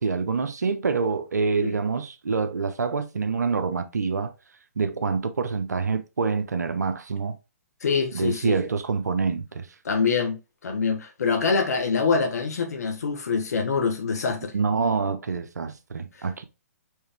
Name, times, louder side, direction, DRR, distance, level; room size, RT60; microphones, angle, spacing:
voice 1, 0.0-4.3 4.8-7.4 8.1-9.7 14.5-16.4, right 5 dB, 85° right, 0.6 m, -26 dB
voice 2, 7.8-8.6 9.8-14.5, left 5 dB, 75° left, 1.0 m, -25 dB
4.6 x 3.3 x 3.4 m
hypercardioid pair, 135°, 9 cm